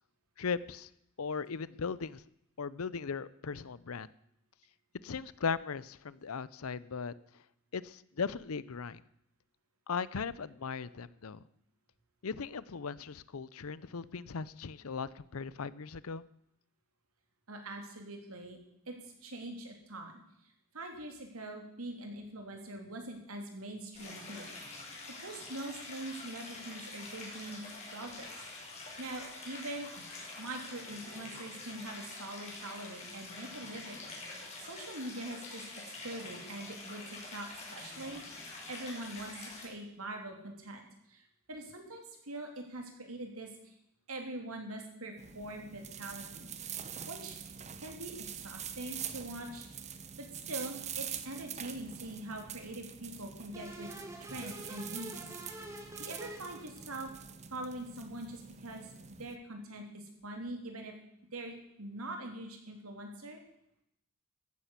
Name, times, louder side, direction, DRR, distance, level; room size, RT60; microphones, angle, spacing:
voice 1, 0.4-0.9 1.2-2.2 2.6-4.1 5.0-7.1 7.7-9.0 9.9-11.4 12.2-16.3, left 5 dB, 80° left, 18 dB, 0.6 m, -38 dB
voice 2, 17.5-18.6 18.9-20.2 20.7-24.9 25.2-27.6 27.9-28.4 28.7-30.0 30.4-34.0 34.3-43.7 44.1-46.5 47.1-47.4 47.8-49.7 50.2-53.9 54.2-55.1 56.0-57.1 57.5-58.9 59.2-60.9 61.3-63.4, right 1 dB, 80° right, 3 dB, 3.1 m, -43 dB
Stream, 23.9-39.7, left 3 dB, 30° left, 4.8 m, -46 dB
sound 1, 45.2-59.4, right 8 dB, 30° right, 0.9 m, -45 dB
sound 2, 53.5-57.1, right 1 dB, 15° right, 2.0 m, -47 dB
14.0 x 10.0 x 8.2 m, 0.77 s
head